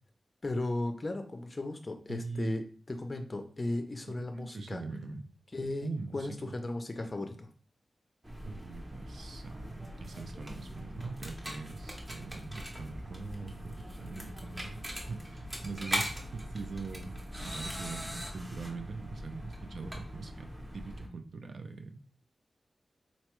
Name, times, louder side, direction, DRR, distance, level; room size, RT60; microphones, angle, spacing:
voice 1, 0.4-4.8 5.5-7.5, left 2 dB, 30° left, 6 dB, 0.5 m, -36 dB
voice 2, 2.1-2.5 4.1-5.2 5.8-6.5 8.5-14.8 15.1-22.1, right 4 dB, 70° right, 7 dB, 0.4 m, -42 dB
sound 1, 8.2-21.1, equal, 20° right, 0.7 m, -41 dB
4.0 x 2.2 x 3.0 m, 0.41 s
wide cardioid pair, 135°, 0 cm